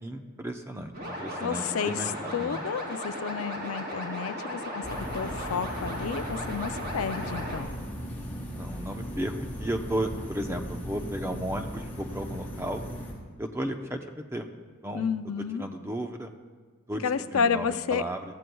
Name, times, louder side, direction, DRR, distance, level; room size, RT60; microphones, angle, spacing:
voice 1, 0.0-2.6 8.5-9.3 9.6-12.8 13.4-14.5 14.8-15.1 15.6-16.3 16.9-18.2, right 1 dB, 10° right, 5 dB, 0.8 m, -34 dB
sound 1, 0.9-7.6, equal, 45° right, 3.6 m, -36 dB
voice 2, 1.4-7.7 14.9-15.7 17.0-18.0, left 6 dB, 75° left, 12 dB, 0.5 m, -31 dB
sound 2, 4.8-13.1, equal, 10° left, 3.3 m, -37 dB
22.0 x 14.5 x 2.3 m, 1.5 s
head